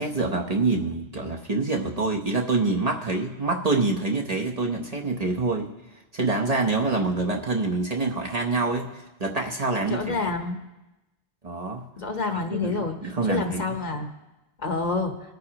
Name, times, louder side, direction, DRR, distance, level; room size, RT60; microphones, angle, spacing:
voice 1, 0.0-5.7 6.1-8.9 9.2-10.3 11.4-11.8 12.5-13.8, right 3 dB, 40° right, 0 dB, 0.9 m, -26 dB
voice 2, 9.8-10.6 12.0-13.0 13.3-14.1 14.6-15.1, left 4 dB, 45° left, 4 dB, 1.1 m, -28 dB
20.0 x 9.3 x 2.9 m, 1.0 s
omnidirectional pair, 1.1 m